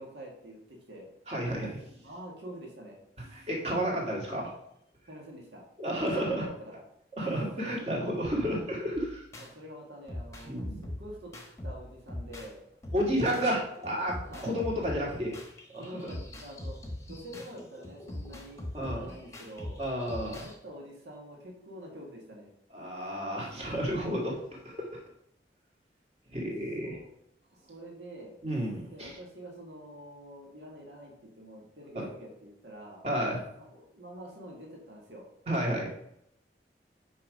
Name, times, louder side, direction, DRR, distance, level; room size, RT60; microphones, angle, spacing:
voice 1, 0.0-1.1 2.0-3.0 5.1-5.6 6.2-6.8 9.4-11.3 11.6-12.6 14.3-14.5 15.8-16.8 17.1-19.8 20.4-22.5 26.8-27.1 27.7-28.4 28.8-33.0 33.5-35.2, equal, 80° right, -1 dB, 1.7 m, -46 dB
voice 2, 1.3-1.8 3.3-4.5 5.8-6.5 7.2-9.2 10.4-10.8 12.9-14.2 14.4-15.4 15.7-16.1 18.7-19.1 19.8-20.5 22.7-25.0 26.3-27.0 28.4-29.1 32.0-32.1 33.0-33.4 35.5-35.9, equal, 35° right, -2 dB, 1.9 m, -31 dB
sound 1, 9.0-9.5 10.1-12.5 12.8-20.6, left 1 dB, 15° left, 1.0 m, -42 dB
5.7 x 4.8 x 5.2 m, 0.76 s
head